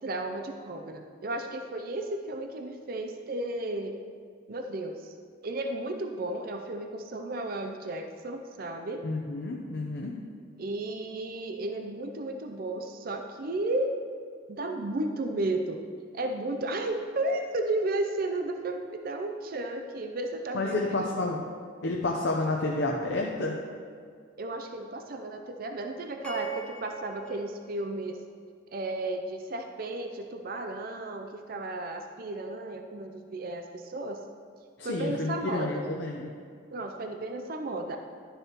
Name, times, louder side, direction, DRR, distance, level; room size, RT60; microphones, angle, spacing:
voice 1, 0.0-4.0 4.5-5.1 5.4-9.0 10.6-13.9 14.5-15.8 16.1-21.1 24.4-28.2 28.7-34.2 34.8-35.9 36.7-38.0, right 2 dB, 45° right, 4 dB, 0.5 m, -33 dB
voice 2, 9.0-10.2 20.5-21.4 21.8-23.6 34.8-36.3, left 2 dB, 60° left, -1 dB, 0.7 m, -30 dB
sound 1, 26.2-28.6, right 5 dB, 5° left, 0.8 m, -41 dB
11.5 x 6.8 x 3.0 m, 2.1 s
head